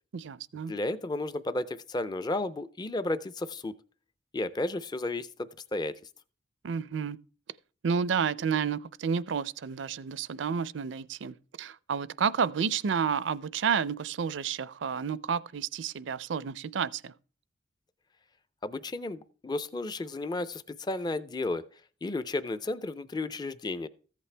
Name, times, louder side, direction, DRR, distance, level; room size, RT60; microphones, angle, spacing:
voice 1, 0.1-0.7 6.6-7.2 7.8-17.1, right 6 dB, 65° right, 0.4 m, -30 dB
voice 2, 0.7-3.7 4.3-6.0 18.6-21.6 22.0-23.9, left 2 dB, 20° left, 0.4 m, -33 dB
14.0 x 8.3 x 3.3 m
head